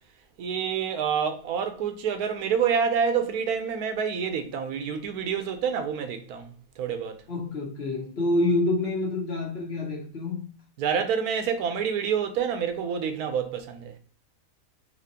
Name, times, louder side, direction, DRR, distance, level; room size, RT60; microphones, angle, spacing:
voice 1, 0.4-7.2 10.8-13.9, right 7 dB, 85° right, 1.2 m, -27 dB
voice 2, 7.3-10.5, left 2 dB, 50° left, 1.1 m, -27 dB
4.2 x 2.8 x 2.7 m
omnidirectional pair, 1.5 m